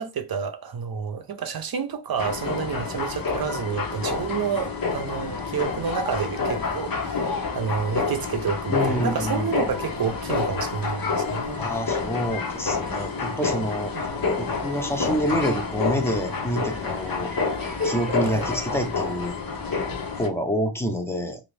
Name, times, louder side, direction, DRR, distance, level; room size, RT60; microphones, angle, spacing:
voice 1, 0.0-11.6 13.9-14.3 18.3-18.5, right 6 dB, 55° right, 0.6 m, -29 dB
sound 1, 2.2-20.3, left 4 dB, 50° left, 0.7 m, -28 dB
voice 2, 8.7-9.6 11.5-13.9 14.3-17.3 17.8-19.4 20.2-21.4, equal, 5° left, 0.6 m, -27 dB
sound 2, 8.7-19.4, right 2 dB, 20° right, 0.9 m, -45 dB
3.1 x 2.6 x 3.3 m
wide cardioid pair, 125°, 43 cm